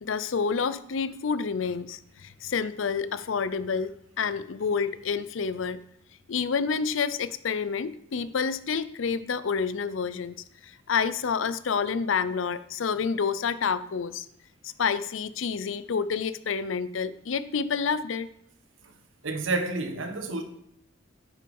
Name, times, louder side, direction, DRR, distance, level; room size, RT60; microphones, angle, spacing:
voice 1, 0.0-5.8 6.3-14.3 14.6-18.3, left 6 dB, 80° left, 0.5 m, -29 dB
voice 2, 19.2-20.4, right 3 dB, 85° right, 1.1 m, -29 dB
9.1 x 6.1 x 5.3 m
head